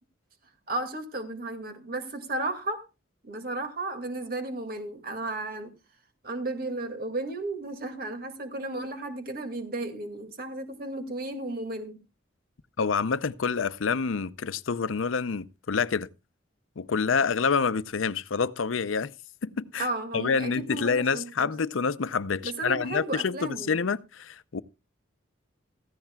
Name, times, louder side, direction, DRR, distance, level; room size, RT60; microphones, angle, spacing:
voice 1, 0.7-2.8 3.2-5.7 6.2-12.0 19.8-21.5 22.4-23.8, right 2 dB, 50° right, 2.2 m, -34 dB
voice 2, 12.8-16.1 16.8-19.1 19.4-19.9 20.1-24.6, left 5 dB, 90° left, 0.6 m, -27 dB
16.0 x 14.5 x 2.3 m
head